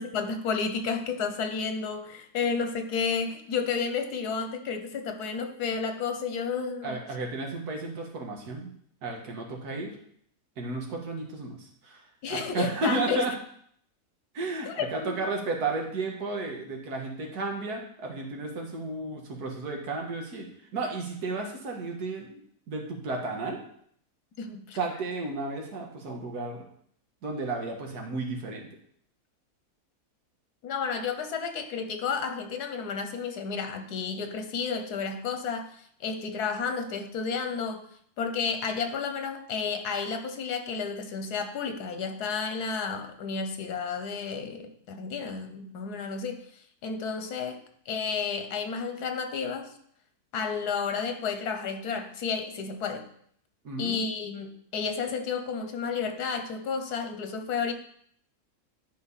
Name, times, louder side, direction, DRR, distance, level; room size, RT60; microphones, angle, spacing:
voice 1, 0.0-7.0 12.2-13.3 14.7-15.2 24.4-24.8 30.6-37.8 38.2-46.4 46.8-47.6 47.9-49.7 50.3-53.1 53.8-57.7, left 5 dB, 90° left, 6 dB, 1.5 m, -31 dB
voice 2, 6.8-8.7 9.0-10.0 10.6-12.0 12.3-13.3 14.3-22.4 22.7-23.6 24.7-26.6 27.2-28.7 53.6-54.0, right 3 dB, 90° right, 1 dB, 2.0 m, -33 dB
10.5 x 4.7 x 4.1 m, 0.63 s
omnidirectional pair, 1.6 m